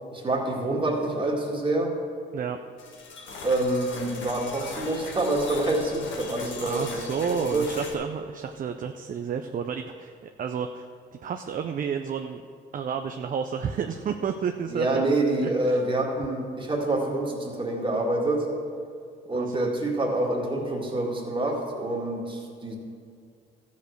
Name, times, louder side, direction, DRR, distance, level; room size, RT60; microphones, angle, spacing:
voice 1, 0.1-1.9 3.4-7.2 7.5-7.7 14.7-18.5 19.3-22.8, right 2 dB, 25° right, -1 dB, 2.1 m, -26 dB
sound 1, 2.8-7.9, left 4 dB, 70° left, 1.6 m, -39 dB
voice 2, 6.6-10.9 11.2-12.4 12.7-15.0 15.4-15.8 19.3-19.6, right 6 dB, 45° right, 6 dB, 0.5 m, -31 dB
13.5 x 5.2 x 6.5 m, 2.3 s
cardioid pair, 90°, 20 cm